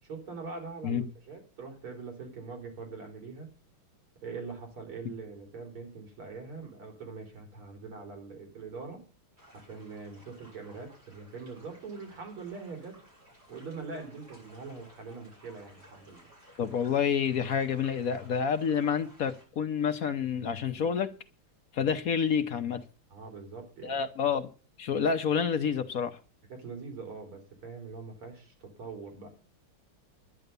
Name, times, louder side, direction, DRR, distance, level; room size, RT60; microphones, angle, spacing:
voice 1, 0.0-3.5 4.2-9.0 9.5-13.0 13.5-16.2 23.1-24.0 26.5-29.3, right 4 dB, 80° right, 4.7 m, -43 dB
sound 1, 9.4-19.4, right 1 dB, 30° right, 7.8 m, -57 dB
voice 2, 16.6-21.1 21.7-22.8 23.8-24.5 24.8-26.2, left 7 dB, 55° left, 1.0 m, -28 dB
11.0 x 9.2 x 6.7 m
omnidirectional pair, 2.3 m